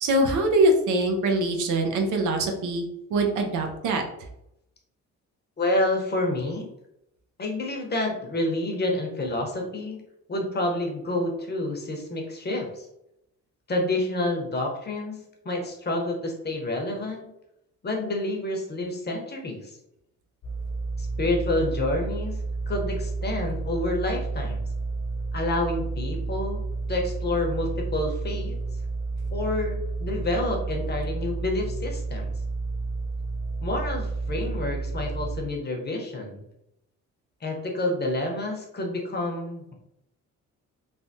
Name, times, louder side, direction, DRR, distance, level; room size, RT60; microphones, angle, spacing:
voice 1, 0.0-2.8 3.1-4.0, right 2 dB, 80° right, 3 dB, 0.7 m, -23 dB
voice 2, 5.6-6.7 7.4-10.0 10.3-12.9 13.7-17.3 17.8-19.7 21.0-22.4 22.7-24.6 25.3-26.6 26.9-28.6 29.3-32.3 33.6-36.4 37.4-39.7, left 2 dB, 35° left, 1 dB, 0.8 m, -28 dB
sound 1, 20.4-35.4, right 3 dB, 50° left, 0.5 m, -31 dB
3.3 x 2.1 x 2.6 m, 0.82 s
cardioid pair, 90°, 30 cm